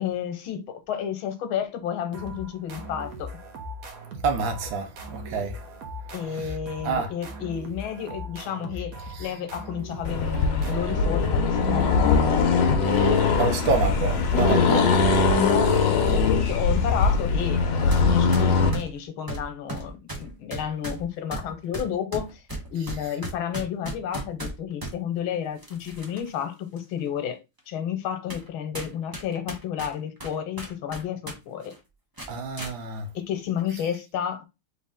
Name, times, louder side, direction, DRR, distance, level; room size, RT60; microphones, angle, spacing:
voice 1, 0.0-3.3 6.1-12.3 14.5-14.7 15.3-22.4 22.7-27.4 27.7-31.7 33.1-34.5, left 9 dB, 90° left, 1.7 m, -31 dB
sound 1, 2.1-11.6, equal, 55° right, 1.0 m, -39 dB
voice 2, 4.2-5.6 6.4-6.5 6.8-7.1 9.1-9.3 13.4-14.8 32.3-33.1, right 4 dB, 75° right, 1.6 m, -27 dB
Accelerating revving vroom, 10.0-18.8, left 4 dB, 70° left, 1.4 m, -21 dB
sound 2, 17.9-18.1 18.3-25.0 25.6-26.3 26.8-26.9 27.6-27.7 28.3-28.5 28.7-31.4 31.6-31.8 32.2-32.7, right 2 dB, 25° right, 0.4 m, -36 dB
4.1 x 3.0 x 3.5 m
omnidirectional pair, 2.2 m